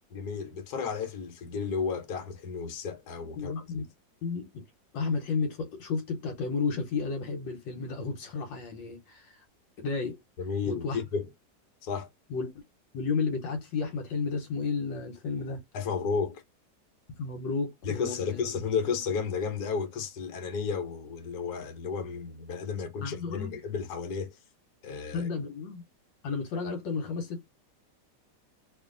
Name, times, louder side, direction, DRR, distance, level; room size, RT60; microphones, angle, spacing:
voice 1, 0.1-3.8 10.4-11.3 11.8-12.1 15.7-16.4 17.8-24.4 24.8-25.3, left 5 dB, 65° left, 1.4 m, -33 dB
voice 2, 3.4-3.8 4.2-4.6 4.9-9.4 9.8-10.2 10.7-11.0 12.3-12.5 12.9-15.6 17.2-18.4 23.0-23.5 25.1-25.8 26.2-27.4, left 4 dB, 80° left, 1.5 m, -32 dB
3.1 x 2.5 x 3.7 m
omnidirectional pair, 2.0 m